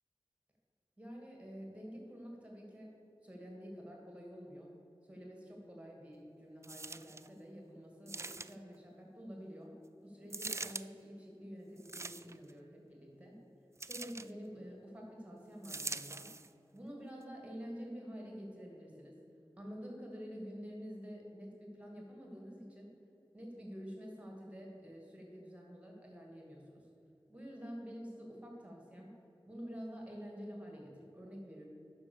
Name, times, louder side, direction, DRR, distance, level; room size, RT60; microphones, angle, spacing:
voice 1, 1.0-2.9 3.2-4.7 5.0-9.7 10.0-13.4 13.8-16.3 16.7-19.2 19.6-22.9 23.3-26.9 27.3-29.1 29.5-31.6, equal, 15° right, -1 dB, 2.3 m, -48 dB
sound 1, 6.6-7.3 8.1-8.8 10.3-10.9 11.8-12.5 13.8-14.3 15.6-16.5 17.2-17.3, right 3 dB, 30° right, 0.3 m, -43 dB
9.5 x 6.3 x 6.8 m, 2.8 s
wide cardioid pair, 55°, 9 cm